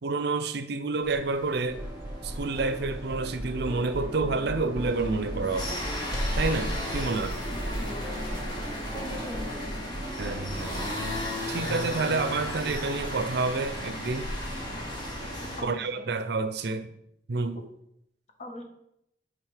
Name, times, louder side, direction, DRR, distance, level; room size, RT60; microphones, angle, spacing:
voice 1, 0.0-1.8 2.2-5.9 6.4-7.4 10.2-10.7 11.5-14.3 15.6-16.9 17.3-17.6, right 3 dB, 60° right, 0.6 m, -29 dB
sound 1, 1.0-15.6, left 1 dB, 25° left, 1.7 m, -35 dB
sound 2, 1.8-11.3, right 1 dB, 10° right, 0.5 m, -38 dB
voice 2, 7.7-8.2 8.9-10.0 15.6-16.1 18.4-18.6, left 1 dB, 40° left, 1.4 m, -41 dB
9.2 x 3.6 x 4.9 m
head